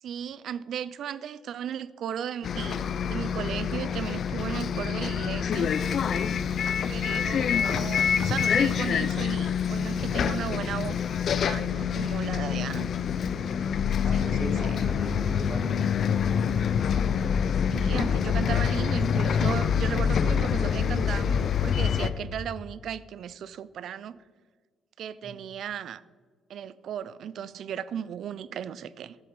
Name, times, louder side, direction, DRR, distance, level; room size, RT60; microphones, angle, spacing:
voice 1, 0.0-5.7 6.9-11.0 11.4-12.9 14.1-14.8 17.7-24.2 25.0-26.0 26.5-29.2, right 9 dB, 70° right, 17 dB, 0.4 m, -36 dB
Bus, 2.4-22.1, left 7 dB, 60° left, 0.5 m, -26 dB
voice 2, 14.0-16.5 25.2-25.3, right 1 dB, 15° right, 2 dB, 2.3 m, -39 dB
12.0 x 7.2 x 4.6 m, 1.5 s
cardioid pair, 90°, 0 cm